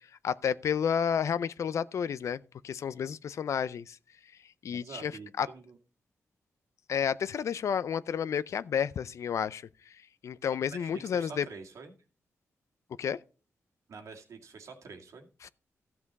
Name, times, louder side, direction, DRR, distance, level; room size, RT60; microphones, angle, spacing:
voice 1, 0.2-4.0 4.6-5.1 5.4-5.5 6.9-9.6 10.2-11.5 13.0-13.2 15.4-15.5, left 7 dB, 75° left, 0.5 m, -31 dB
voice 2, 4.7-5.8 10.7-11.9 13.9-15.3, right 4 dB, 80° right, 2.0 m, -46 dB
13.5 x 7.4 x 4.0 m
wide cardioid pair, 100°, 5 cm